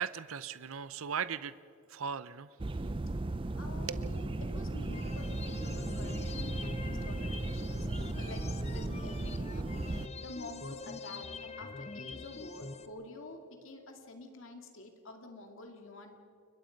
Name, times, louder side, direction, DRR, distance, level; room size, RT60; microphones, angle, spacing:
voice 1, 0.0-1.5 1.9-2.6 3.9-4.0, right 7 dB, 65° right, 15 dB, 0.6 m, -37 dB
sound 1, 2.6-10.1, right 2 dB, 25° right, 0.5 m, -36 dB
voice 2, 3.6-16.2, left 2 dB, 60° left, 4 dB, 2.5 m, -49 dB
sound 2, 4.9-12.9, left 4 dB, 30° left, 0.8 m, -44 dB
30.0 x 22.5 x 5.3 m, 2.5 s
head